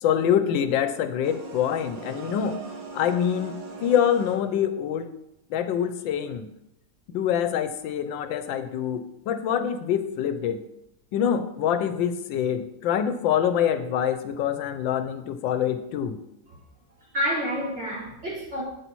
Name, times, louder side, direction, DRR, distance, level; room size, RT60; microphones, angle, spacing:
voice 1, 0.0-2.6 2.9-5.1 5.5-6.5 7.1-10.6 11.1-16.2, left 9 dB, 90° left, 1.4 m, -25 dB
sound 1, 1.2-4.7, right 4 dB, 85° right, 2.2 m, -40 dB
voice 2, 17.0-18.6, equal, 35° right, 3.4 m, -29 dB
8.6 x 8.2 x 4.6 m
omnidirectional pair, 2.0 m